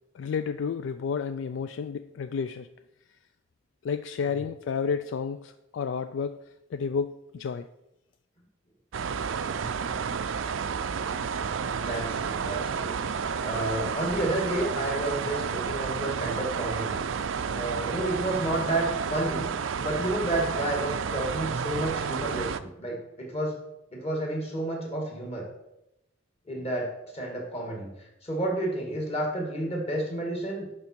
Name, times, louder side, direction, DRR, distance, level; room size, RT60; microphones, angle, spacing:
voice 1, 0.1-2.7 3.8-6.4 6.7-7.7, left 6 dB, 65° left, 11 dB, 0.3 m, -31 dB
sound 1, 8.9-22.6, right 6 dB, 75° right, 0.5 m, -31 dB
voice 2, 11.7-12.9 13.4-17.0 17.5-23.6 23.9-25.5 26.5-30.7, right 1 dB, 30° left, 0 dB, 2.0 m, -31 dB
11.0 x 4.9 x 4.5 m, 0.87 s
head